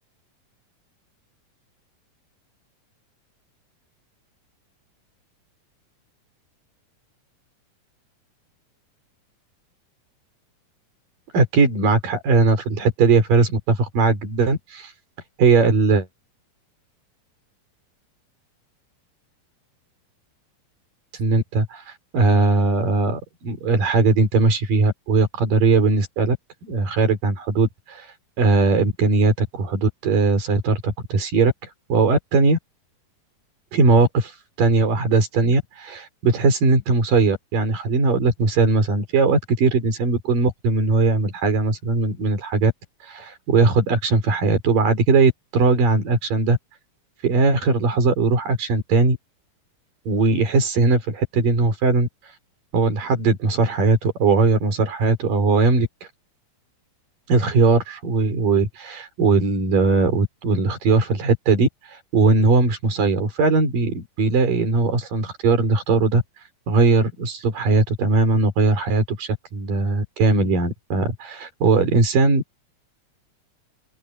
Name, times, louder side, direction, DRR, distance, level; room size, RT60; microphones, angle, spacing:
voice 1, 11.3-14.9 15.4-16.1 21.2-21.8 22.1-26.4 26.6-28.1 28.4-31.5 31.9-32.6 33.7-34.3 34.6-42.7 43.0-46.6 47.2-49.2 50.1-52.1 52.7-55.9 57.3-61.7 62.1-66.2 66.7-72.4, right 3 dB, 75° right, 6.4 m, -19 dB
open air
omnidirectional pair, 3.9 m